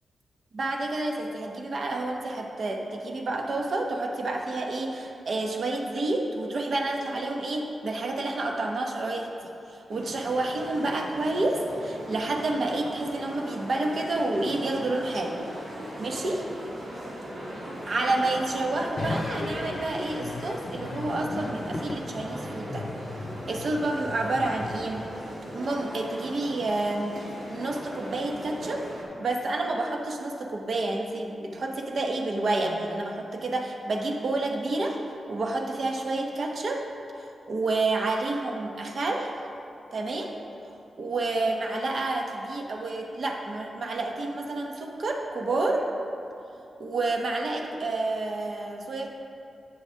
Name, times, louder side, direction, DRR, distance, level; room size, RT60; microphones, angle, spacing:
voice 1, 0.5-9.3 9.7-15.4 16.0-16.4 17.9-22.8 23.5-25.0 25.5-28.8 29.2-35.0 35.3-36.8 37.2-39.3 39.9-40.3 41.0-45.9 46.8-49.1, right 2 dB, 65° right, 1 dB, 0.9 m, -29 dB
sound 1, 9.9-29.0, equal, 80° right, 1.8 m, -39 dB
sound 2, 19.0-25.3, left 3 dB, 50° left, 0.6 m, -37 dB
11.5 x 8.0 x 2.8 m, 2.7 s
cardioid pair, 85°, 0 cm